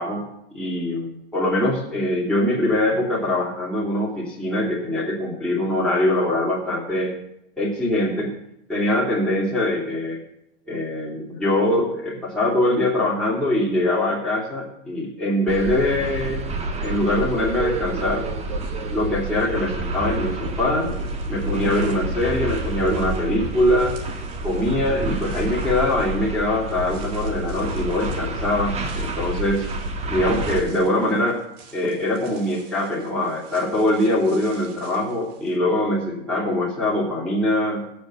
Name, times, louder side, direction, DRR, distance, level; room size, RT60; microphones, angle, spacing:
voice 1, 0.0-7.1 7.6-8.4 8.7-10.2 10.7-16.5 16.8-18.3 18.9-20.9 21.3-24.0 24.4-29.7 30.1-31.4 31.7-37.9, left 1 dB, ahead, -6 dB, 2.7 m, -23 dB
sound 1, 15.5-30.6, right 2 dB, 20° right, 1.6 m, -29 dB
sound 2, 17.4-20.5 20.8-35.6, right 6 dB, 60° right, 2.8 m, -42 dB
16.5 x 6.9 x 6.5 m, 0.79 s
hypercardioid pair, 125°, 36 cm